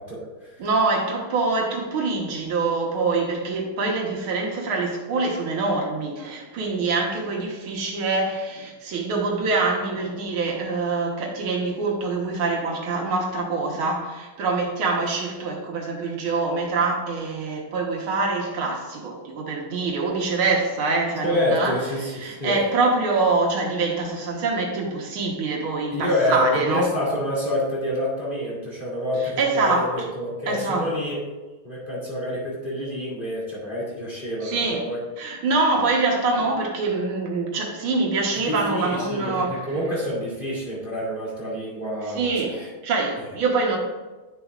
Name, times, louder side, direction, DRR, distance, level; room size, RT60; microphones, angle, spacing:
voice 1, 0.0-0.7 21.2-22.6 25.9-31.2 31.6-35.0 38.3-42.7, left 1 dB, 25° left, -7 dB, 2.7 m, -27 dB
voice 2, 0.6-21.8 22.2-26.9 29.4-29.9 30.5-30.9 34.4-34.9 35.2-39.6 42.1-42.6 42.8-43.8, right 3 dB, 75° right, 0 dB, 2.0 m, -25 dB
10.5 x 6.8 x 2.4 m, 1.2 s
omnidirectional pair, 2.3 m